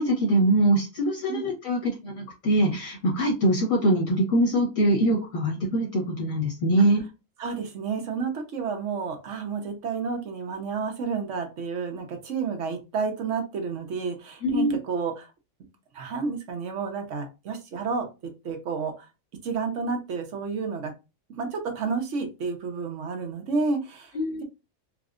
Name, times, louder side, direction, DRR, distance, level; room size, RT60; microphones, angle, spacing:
voice 1, 0.0-7.0 14.4-14.8 24.1-24.4, right 1 dB, 85° left, -2 dB, 1.8 m, -23 dB
voice 2, 7.4-15.3 15.9-19.1 19.4-20.9 21.3-24.1, right 5 dB, 70° right, 4 dB, 1.1 m, -30 dB
4.5 x 2.1 x 2.5 m, 0.27 s
omnidirectional pair, 1.4 m